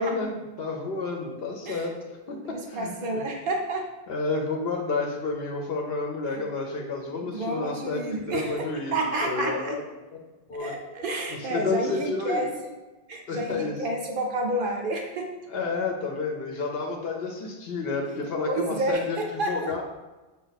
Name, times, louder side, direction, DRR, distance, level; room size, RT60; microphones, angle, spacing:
voice 1, 0.0-1.9 2.3-3.2 4.1-9.8 10.1-10.2 10.5-10.7 11.3-12.5 13.3-13.8 15.5-19.8, left 3 dB, 65° left, 2 dB, 0.9 m, -30 dB
voice 2, 2.3-3.9 6.3-6.4 7.2-9.8 10.6-12.7 13.1-15.3 18.1-18.2 18.4-19.8, right 1 dB, 60° right, 2 dB, 0.7 m, -30 dB
5.2 x 2.2 x 3.9 m, 1.2 s
omnidirectional pair, 1.1 m